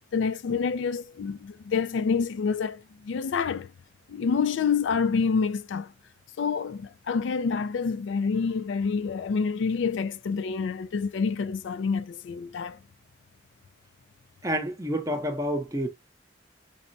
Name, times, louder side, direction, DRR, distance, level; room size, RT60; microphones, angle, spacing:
voice 1, 0.1-3.7 4.1-5.9 6.4-12.8, left 5 dB, 75° left, 0.3 m, -27 dB
voice 2, 14.4-15.9, equal, 15° right, 0.7 m, -28 dB
5.3 x 2.1 x 2.6 m
head